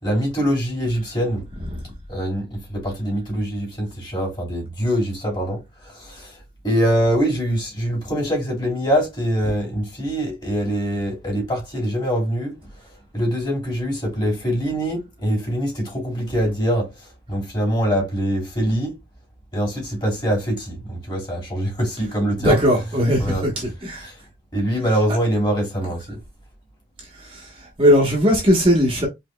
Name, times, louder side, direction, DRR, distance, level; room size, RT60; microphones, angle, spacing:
voice 1, 0.0-1.4 2.1-6.4 6.6-12.6 13.1-16.9 17.3-19.0 19.5-22.6 23.2-23.5 24.0-24.2 24.5-26.2, equal, 25° left, 2.8 m, -23 dB
voice 2, 22.4-24.1 27.3-27.5 27.8-29.1, equal, 25° right, 1.0 m, -18 dB
4.9 x 3.4 x 2.2 m
head